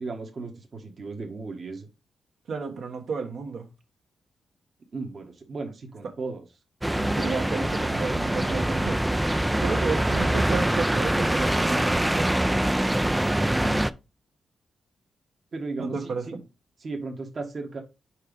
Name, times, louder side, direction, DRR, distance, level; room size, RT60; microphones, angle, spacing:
voice 1, 0.0-1.9 4.9-6.4 13.5-13.9 15.5-16.4 16.8-17.8, right 3 dB, 40° right, 1.2 m, -36 dB
voice 2, 2.5-3.7 7.1-9.0 9.6-12.3 15.8-16.3, right 4 dB, 65° right, 1.4 m, -32 dB
sound 1, 6.8-13.9, right 1 dB, 5° right, 0.4 m, -24 dB
4.9 x 4.5 x 5.1 m
cardioid pair, 110°, 0 cm